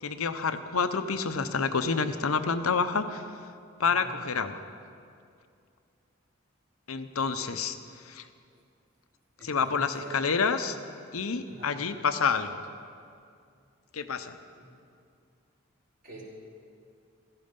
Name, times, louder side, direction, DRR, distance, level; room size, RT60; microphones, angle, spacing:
voice 1, 0.0-3.2 3.8-4.6 6.9-7.8 8.0-8.2 9.4-10.8 11.1-12.6 13.9-14.4, left 5 dB, 90° left, 10 dB, 0.8 m, -28 dB
voice 2, 3.8-4.1 9.4-10.3 11.5-11.8 14.5-14.7 16.0-16.2, right 1 dB, 45° right, -5 dB, 3.8 m, -45 dB
15.5 x 14.0 x 5.3 m, 2.4 s
head